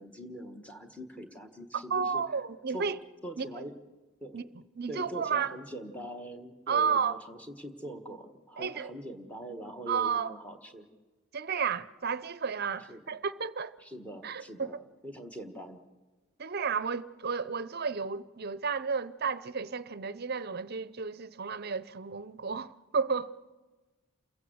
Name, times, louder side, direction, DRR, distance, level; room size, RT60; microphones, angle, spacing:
voice 1, 0.0-2.2 2.7-2.9 3.2-3.8 4.2-4.5 4.9-10.9 12.9-13.0 13.8-15.8, right 1 dB, 5° left, 1.4 m, -43 dB
voice 2, 1.9-3.0 3.4-3.5 4.3-4.4 4.8-5.5 6.7-7.2 8.6-8.9 9.9-10.3 11.3-13.7 14.2-14.7 16.4-23.3, right 6 dB, 45° right, 0.6 m, -32 dB
28.5 x 16.0 x 7.9 m
head